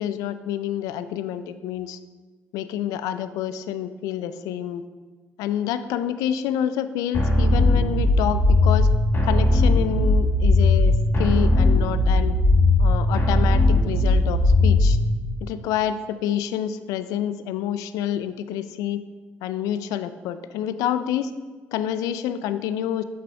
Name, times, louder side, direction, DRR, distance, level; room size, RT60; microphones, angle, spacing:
voice 1, 0.0-2.0 2.5-4.8 5.4-8.9 9.2-12.3 12.8-15.0 15.4-19.0 19.4-21.3 21.7-23.0, left 10 dB, 70° left, 12 dB, 0.4 m, -28 dB
sound 1, 7.1-15.1, left 2 dB, 35° left, 1.9 m, -18 dB
8.7 x 6.5 x 2.3 m, 1.4 s
hypercardioid pair, 50°, 6 cm